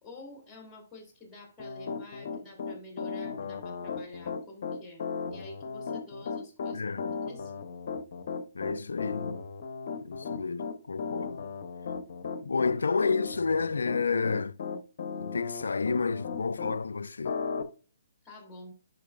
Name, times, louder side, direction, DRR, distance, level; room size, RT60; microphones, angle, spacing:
voice 1, 0.0-5.0 5.3-6.8 7.3-7.8 18.2-18.7, left 2 dB, 10° left, 3.0 m, -48 dB
Piano, 1.6-16.8 17.2-17.6, left 5 dB, 55° left, 0.8 m, -36 dB
voice 2, 6.7-7.2 8.5-9.4 10.0-11.4 12.4-14.6 15.2-17.4, left 4 dB, 75° left, 0.3 m, -30 dB
10.5 x 5.4 x 2.3 m
figure-of-eight pair, 135°, 0 cm